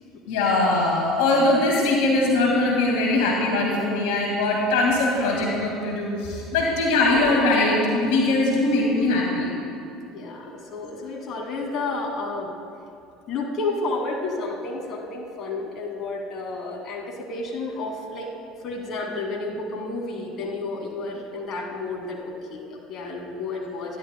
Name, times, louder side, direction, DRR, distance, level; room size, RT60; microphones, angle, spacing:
voice 1, 0.3-9.5, left 2 dB, 70° left, -2 dB, 1.9 m, -21 dB
voice 2, 10.1-12.5 13.3-18.3 18.6-24.0, left 3 dB, 50° left, 0 dB, 2.2 m, -31 dB
27.0 x 11.0 x 2.2 m, 2.5 s
hypercardioid pair, 70°, 0 cm